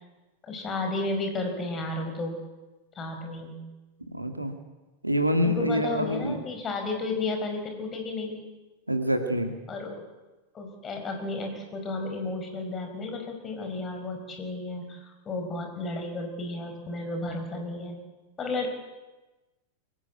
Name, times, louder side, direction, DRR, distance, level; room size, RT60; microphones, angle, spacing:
voice 1, 0.4-2.4 3.0-3.6 5.4-8.4 9.7-10.0 10.5-18.0 18.4-18.7, left 2 dB, 25° left, 4 dB, 5.3 m, -33 dB
voice 2, 4.1-4.5 5.0-6.4 8.9-9.5, equal, 85° right, 6 dB, 2.2 m, -26 dB
24.0 x 15.5 x 8.4 m, 1.1 s
figure-of-eight pair, 90°, 0 cm